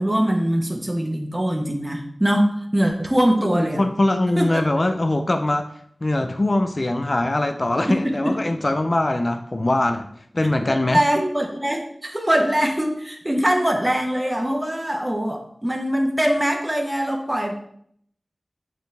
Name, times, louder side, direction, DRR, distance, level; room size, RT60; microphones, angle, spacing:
voice 1, 0.0-3.8 4.4-4.7 7.9-8.3 10.6-17.5, equal, 15° right, 3 dB, 1.1 m, -22 dB
voice 2, 3.5-5.7 6.0-10.1 10.3-11.0, left 1 dB, 40° left, 6 dB, 0.5 m, -22 dB
8.9 x 4.1 x 3.4 m, 0.65 s
wide cardioid pair, 75°, 0 cm